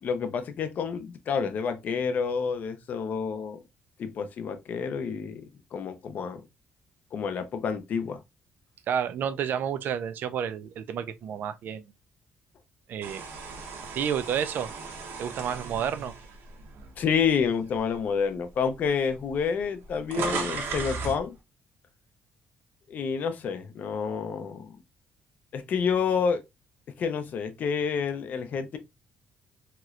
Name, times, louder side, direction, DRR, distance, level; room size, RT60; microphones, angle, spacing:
voice 1, 0.0-3.6 4.0-6.4 7.1-8.2 17.0-21.3 22.9-24.8 25.5-26.4 27.0-28.8, left 6 dB, 45° left, 0.5 m, -29 dB
voice 2, 8.9-11.9 12.9-13.3 13.9-14.7 15.2-16.1, right 8 dB, 55° right, 0.4 m, -30 dB
sound 1, 13.0-17.3 17.8-18.0 18.9-19.0 19.2-21.2, right 4 dB, 70° right, 0.8 m, -36 dB
3.0 x 2.9 x 2.3 m
cardioid pair, 165°, 4 cm